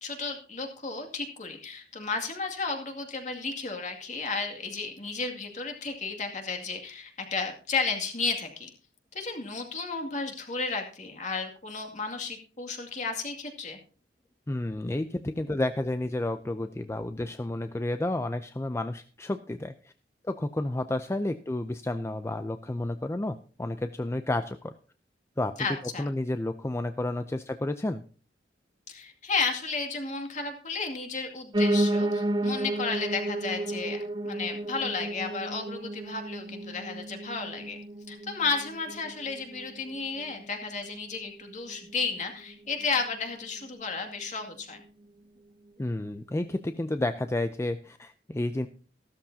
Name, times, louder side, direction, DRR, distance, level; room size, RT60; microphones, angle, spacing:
voice 1, 0.0-8.7 9.1-13.8 25.6-26.1 28.9-34.0 34.2-37.8 38.1-44.8, left 4 dB, 45° left, 4 dB, 2.3 m, -33 dB
voice 2, 14.5-19.9 20.2-24.7 25.4-25.5 26.0-28.0 45.8-48.7, left 1 dB, 15° left, 9 dB, 0.5 m, -31 dB
Piano, 31.5-40.6 41.0-42.2 42.5-42.6 42.8-42.9 43.1-43.2 43.8-43.9, right 1 dB, 25° right, 0.9 m, -32 dB
14.5 x 13.0 x 2.8 m, 0.39 s
head